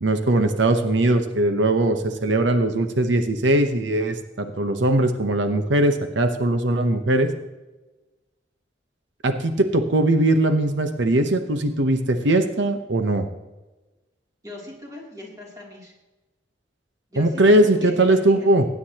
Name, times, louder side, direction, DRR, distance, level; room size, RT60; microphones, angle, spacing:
voice 1, 0.0-7.3 9.2-13.3 17.2-18.7, right 1 dB, 90° right, 7 dB, 1.0 m, -20 dB
voice 2, 14.4-15.9 17.1-18.5, left 2 dB, 20° right, -2 dB, 2.9 m, -40 dB
19.5 x 9.6 x 2.9 m, 1.1 s
head